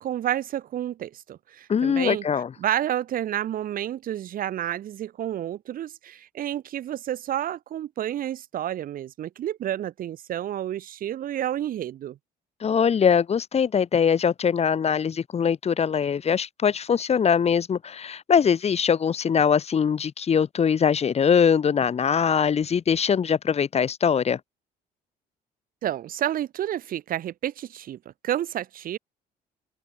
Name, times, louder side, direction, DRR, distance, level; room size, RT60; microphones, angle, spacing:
voice 1, 0.0-2.2 2.6-12.2 25.8-28.0 28.2-29.0, right 11 dB, 55° right, 1.2 m, -30 dB
voice 2, 1.7-2.5 12.6-24.4, left 7 dB, 40° left, 2.9 m, -22 dB
open air
cardioid pair, 110°, 17 cm